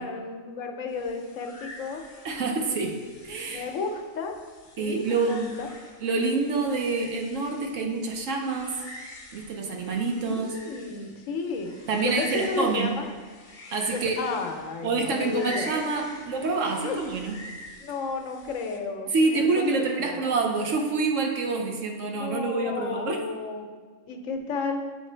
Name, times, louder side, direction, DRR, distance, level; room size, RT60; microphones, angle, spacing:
voice 1, 0.0-2.1 3.5-4.4 4.8-5.7 10.2-11.7 12.0-13.1 13.9-15.7 16.3-16.5 16.8-17.0 17.8-20.2 22.1-23.7 24.1-24.9, left 4 dB, 75° left, 4 dB, 1.0 m, -33 dB
sound 1, 0.9-18.8, left 1 dB, 45° left, 0.8 m, -45 dB
voice 2, 2.2-3.0 3.2-3.6 4.8-5.5 6.0-8.8 9.3-10.5 11.9-12.9 13.7-14.2 14.8-17.3 19.1-23.2, right 3 dB, 70° right, 2 dB, 1.1 m, -27 dB
8.4 x 3.2 x 4.3 m, 1.4 s
omnidirectional pair, 1.4 m